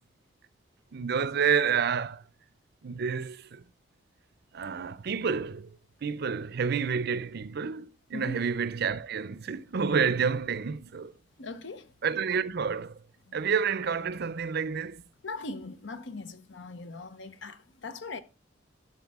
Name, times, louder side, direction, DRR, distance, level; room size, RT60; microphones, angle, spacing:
voice 1, 0.9-2.2 2.8-3.6 4.5-11.1 12.0-13.0 13.3-15.0, right 6 dB, 60° right, 0.5 m, -29 dB
voice 2, 11.4-11.9 13.3-13.5 15.2-18.2, left 3 dB, 70° left, 0.8 m, -40 dB
12.0 x 6.6 x 3.5 m
head